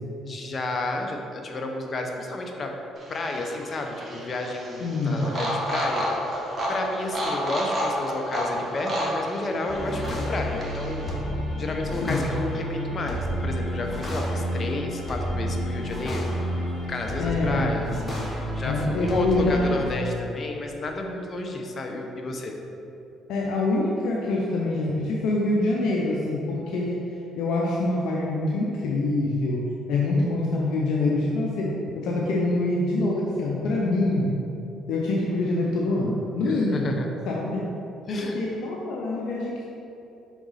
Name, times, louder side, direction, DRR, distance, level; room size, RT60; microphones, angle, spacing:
voice 1, 0.2-2.7 3.1-6.1 6.7-11.1 11.6-16.6 16.9-22.6 36.5-37.1 38.1-38.4, left 2 dB, 40° left, 2 dB, 0.8 m, -31 dB
sound 1, 3.0-11.1, equal, 30° right, 1.4 m, -31 dB
voice 2, 4.8-5.3 12.0-12.3 17.2-17.8 18.6-19.9 23.3-27.0 27.4-34.3 34.9-36.9 37.3-37.7 38.1-39.6, left 2 dB, 75° left, -3 dB, 0.6 m, -25 dB
sound 2, 9.7-19.9, equal, 25° left, 1.3 m, -30 dB
5.9 x 4.0 x 4.0 m, 2.8 s
supercardioid pair, 80°, 0 cm